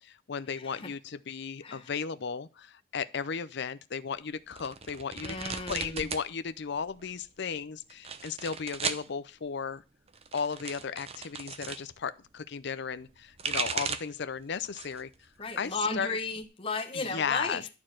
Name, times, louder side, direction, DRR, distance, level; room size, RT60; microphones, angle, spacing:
voice 1, 0.0-5.4 5.7-9.8 10.3-15.3 15.6-16.2 16.9-17.6, left 6 dB, 55° left, 0.5 m, -35 dB
voice 2, 0.5-0.9 1.6-1.9 5.2-6.1 15.4-17.7, left 3 dB, 25° left, 1.4 m, -35 dB
sound 1, 4.5-6.3 6.6-7.2 7.9-9.1 10.1-11.8 13.1-14.2 14.6-15.1 15.5-16.4, right 5 dB, 30° right, 0.7 m, -36 dB
11.5 x 4.4 x 7.5 m
head